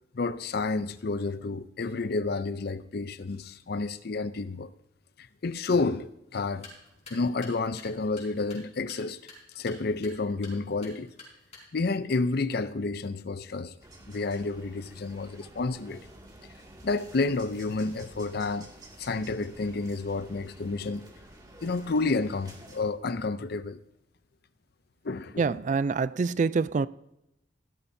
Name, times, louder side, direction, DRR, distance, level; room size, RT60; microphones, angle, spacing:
voice 1, 0.1-4.7 5.4-6.7 7.1-9.2 9.6-11.1 11.7-13.7 14.1-16.1 16.8-18.7 19.0-21.1 21.6-23.8 25.0-25.6, left 3 dB, 55° left, 0.5 m, -30 dB
sound 1, 6.4-12.0, left 2 dB, 35° left, 4.4 m, -51 dB
sound 2, 13.8-22.8, right 1 dB, 20° right, 2.2 m, -50 dB
voice 2, 25.4-26.9, right 4 dB, 40° right, 0.3 m, -26 dB
16.5 x 12.5 x 2.7 m
head